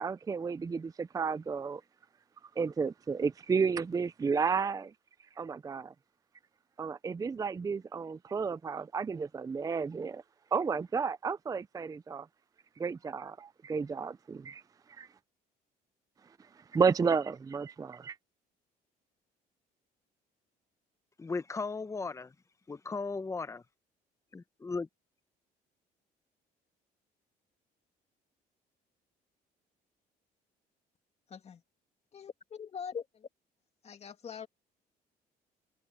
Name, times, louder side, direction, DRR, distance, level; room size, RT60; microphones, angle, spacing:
voice 1, 0.0-1.8 2.6-4.9 5.4-5.9 6.8-10.2 10.5-12.3 12.8-14.6 15.0-15.1 16.7-18.2, right 5 dB, 20° right, 0.5 m, -32 dB
voice 2, 21.2-22.3 22.7-23.6 24.3-24.9, left 4 dB, 15° left, 0.9 m, -36 dB
voice 3, 32.1-33.3 33.8-34.5, left 7 dB, 40° left, 2.4 m, -42 dB
cardioid pair, 110°, 17 cm